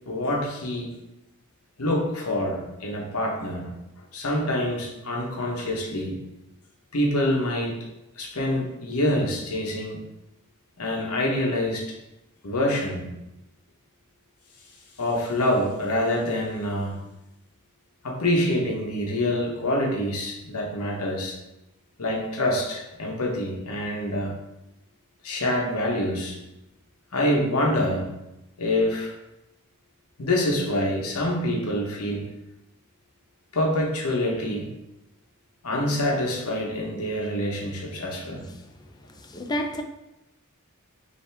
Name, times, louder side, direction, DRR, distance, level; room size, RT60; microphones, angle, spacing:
voice 1, 0.1-0.9 1.8-3.7 4.1-6.2 6.9-7.8 8.2-10.0 10.8-11.8 12.4-13.1 15.0-17.0 18.0-21.4 22.0-24.3 25.2-26.4 27.1-28.1 28.6-29.1 30.2-32.3 33.5-34.7 35.6-38.5, left 1 dB, 75° left, 0 dB, 1.0 m, -26 dB
voice 2, 39.2-39.8, equal, 20° left, 5 dB, 0.4 m, -29 dB
5.5 x 2.8 x 3.4 m, 0.92 s
head